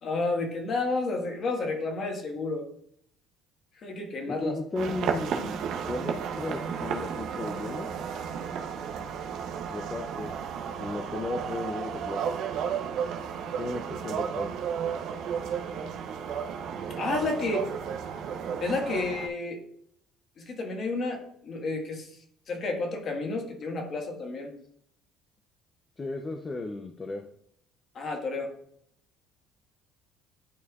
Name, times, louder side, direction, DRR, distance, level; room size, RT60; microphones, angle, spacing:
voice 1, 0.0-2.7 3.8-4.5 4.9-5.0 17.0-17.7 18.6-19.6 20.4-22.1 22.5-24.5 27.9-28.5, left 3 dB, 35° left, 2 dB, 1.4 m, -31 dB
voice 2, 4.2-5.6 5.9-7.9 9.7-10.3 10.8-12.3 13.6-14.5 26.0-27.2, left 2 dB, 20° left, 4 dB, 0.5 m, -35 dB
sound 1, 4.8-19.3, right 7 dB, 55° right, 0.7 m, -33 dB
11.0 x 4.3 x 2.3 m, 0.69 s
cardioid pair, 165°, 0 cm